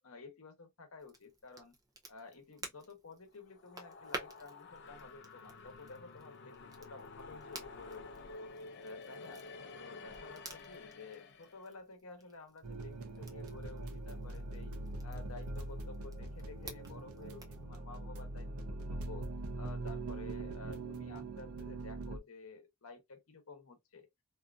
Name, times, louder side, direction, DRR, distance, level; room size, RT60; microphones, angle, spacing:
voice 1, 0.0-1.8 2.1-8.3 8.8-9.4 9.7-14.7 15.0-18.5 18.9-19.2 19.6-24.1, left 4 dB, 75° left, 0.9 m, -52 dB
Crackle, 1.0-17.6, right 2 dB, 15° right, 0.6 m, -53 dB
sound 1, 3.3-11.7, left 3 dB, 55° left, 0.5 m, -51 dB
sound 2, 12.6-22.2, right 2 dB, 85° right, 0.6 m, -42 dB
2.7 x 2.5 x 2.3 m
head